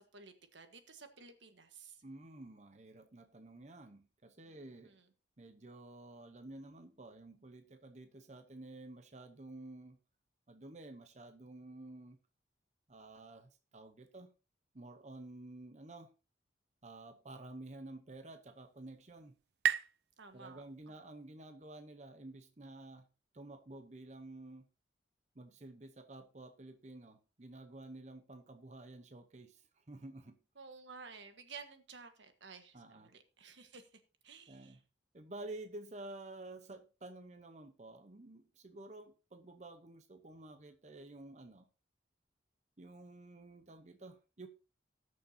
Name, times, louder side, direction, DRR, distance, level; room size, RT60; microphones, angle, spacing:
voice 1, 0.0-2.0 4.8-5.0 20.2-20.9 30.6-34.8, right 5 dB, 85° right, 1.5 m, -54 dB
voice 2, 2.0-5.0 5.4-10.0 10.5-12.2 12.9-14.3 14.7-16.1 16.8-19.4 20.3-23.1 23.3-24.7 25.3-30.4 32.7-33.1 34.5-34.8 35.1-41.7 42.8-44.5, right 2 dB, 40° right, 0.8 m, -51 dB
sound 1, 18.2-21.6, right 8 dB, 60° right, 0.5 m, -40 dB
19.0 x 6.5 x 2.8 m
head